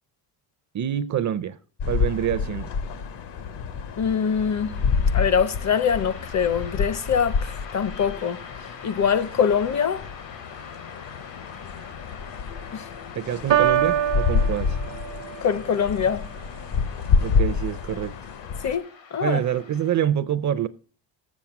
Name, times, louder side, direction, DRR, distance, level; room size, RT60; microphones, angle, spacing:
voice 1, 0.7-1.6 1.9-2.7 13.2-14.8 17.2-18.1 19.2-20.7, right 10 dB, 40° right, 0.5 m, -26 dB
sound 1, 1.8-18.8, left 5 dB, 70° left, 1.0 m, -28 dB
sound 2, 3.6-20.0, left 5 dB, 85° left, 2.2 m, -46 dB
voice 2, 4.0-4.8 5.1-8.4 8.8-10.0 12.7-12.8 15.4-16.3 18.6-19.4, left 7 dB, 40° left, 0.6 m, -23 dB
Piano, 13.5-15.5, right 10 dB, 70° right, 0.7 m, -23 dB
7.2 x 6.9 x 5.8 m
cardioid pair, 115°, 44 cm